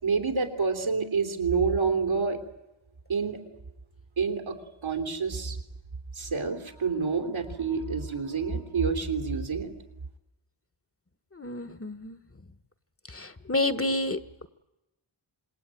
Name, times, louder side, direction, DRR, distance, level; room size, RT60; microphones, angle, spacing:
voice 1, 0.0-2.4 3.1-3.4 4.2-4.5 4.8-5.6 6.1-9.7, right 5 dB, 75° right, 4 dB, 3.5 m, -28 dB
voice 2, 11.4-12.2 13.1-14.2, left 2 dB, 30° left, 12 dB, 1.4 m, -29 dB
27.0 x 21.0 x 9.2 m, 0.94 s
wide cardioid pair, 60°, 47 cm